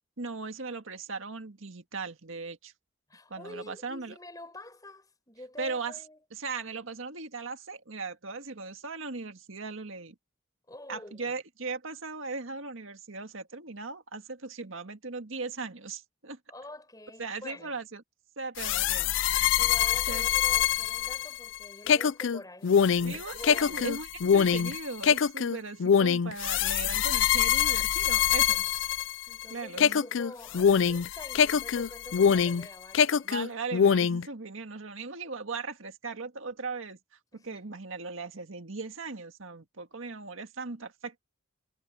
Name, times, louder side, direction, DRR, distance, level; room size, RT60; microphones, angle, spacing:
voice 1, 0.2-2.7 3.3-4.1 5.6-5.9 6.3-10.2 10.9-16.4 17.2-18.0 18.4-19.1 20.1-20.3 23.0-28.9 29.5-30.0 33.2-37.0 37.3-41.2, right 4 dB, 85° right, 1.8 m, -38 dB
voice 2, 3.1-6.2 10.7-11.3 16.5-17.7 19.6-23.9 29.3-33.3 37.3-37.6, left 1 dB, 20° left, 7.2 m, -47 dB
sound 1, 18.6-29.4 29.8-32.7 32.9-34.3, left 8 dB, 70° left, 0.4 m, -24 dB
head